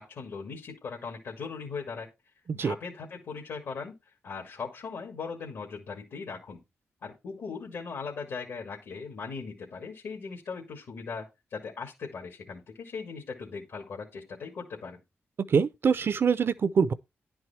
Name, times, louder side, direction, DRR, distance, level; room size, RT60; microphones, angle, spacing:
voice 1, 0.0-2.1 2.5-3.9 4.2-6.6 7.0-15.0, left 5 dB, 80° left, 2.1 m, -39 dB
voice 2, 15.5-16.9, right 6 dB, 50° right, 0.6 m, -24 dB
10.5 x 4.7 x 4.3 m
cardioid pair, 95°, 5 cm